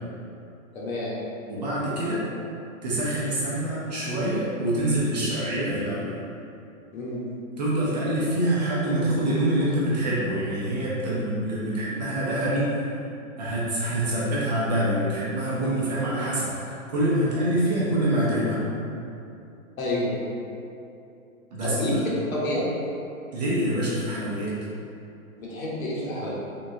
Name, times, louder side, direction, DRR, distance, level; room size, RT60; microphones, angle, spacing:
voice 1, 0.7-1.1 6.9-7.2 19.8-20.1 21.6-22.0 22.3-22.6 25.4-26.3, left 1 dB, 70° left, -6 dB, 1.1 m, -29 dB
voice 2, 1.5-2.2 2.8-6.1 7.6-12.9 13.4-18.6 21.5-22.0 23.3-24.5, right 1 dB, 30° right, -7 dB, 0.5 m, -25 dB
3.6 x 2.2 x 2.6 m, 2.7 s
hypercardioid pair, 150°, 42 cm